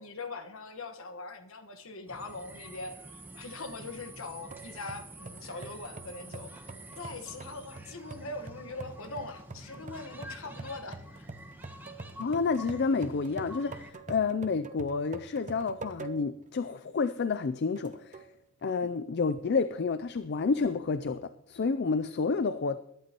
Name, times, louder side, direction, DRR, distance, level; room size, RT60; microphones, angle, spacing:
voice 1, 0.0-6.5 7.0-11.3, left 3 dB, 65° left, 7 dB, 1.4 m, -42 dB
sound 1, 2.1-13.9, right 1 dB, 10° right, 1.0 m, -48 dB
sound 2, 4.5-16.4 16.9-17.0 17.8-18.3, right 3 dB, 35° right, 0.7 m, -46 dB
voice 2, 12.2-18.3 18.6-22.8, left 4 dB, 50° left, 12 dB, 0.4 m, -30 dB
22.0 x 11.0 x 3.0 m, 0.77 s
head